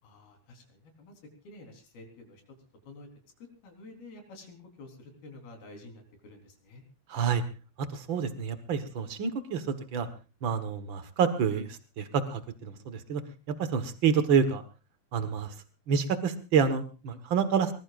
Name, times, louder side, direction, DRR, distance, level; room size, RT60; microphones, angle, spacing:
voice 1, 0.0-2.5 2.9-3.1 3.6-6.8, left 2 dB, 85° left, 3 dB, 5.7 m, -50 dB
voice 2, 7.1-7.4 7.8-10.1 10.4-13.2 13.5-14.6 15.1-15.5 15.9-17.7, right 6 dB, 65° right, 11 dB, 1.2 m, -28 dB
23.5 x 20.0 x 2.5 m, 0.32 s
omnidirectional pair, 4.3 m